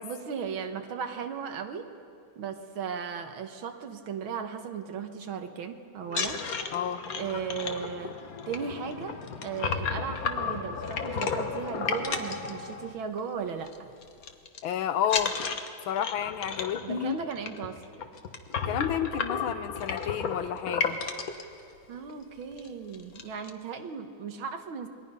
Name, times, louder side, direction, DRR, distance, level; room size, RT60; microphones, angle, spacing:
voice 1, 0.0-1.9 2.4-6.4 7.1-8.1 8.5-13.9 16.8-17.8 21.9-24.9, right 6 dB, 75° right, 7 dB, 2.1 m, -36 dB
sound 1, 6.0-13.2 13.5-13.8 14.0-14.6 15.0-21.4 22.1-22.2 22.5-22.7 22.9-23.5, left 5 dB, 50° left, 1.4 m, -33 dB
voice 2, 6.7-7.0 14.6-15.3 15.9-17.2 18.7-21.0, left 9 dB, 80° left, 11 dB, 1.7 m, -30 dB
28.0 x 21.5 x 5.5 m, 2.4 s
omnidirectional pair, 2.2 m